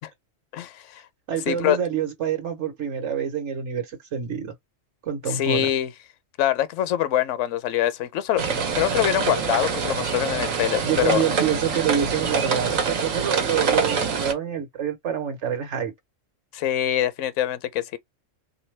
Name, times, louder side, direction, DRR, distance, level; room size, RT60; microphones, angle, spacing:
voice 1, 0.5-1.0 1.5-1.8 5.3-5.9 6.4-11.2 16.5-18.0, left 11 dB, 75° left, 0.9 m, -24 dB
voice 2, 1.3-4.5 5.0-5.7 10.8-15.9, right 8 dB, 65° right, 1.3 m, -27 dB
sound 1, 8.4-14.3, right 5 dB, 85° right, 1.3 m, -25 dB
3.3 x 2.8 x 3.2 m
omnidirectional pair, 1.3 m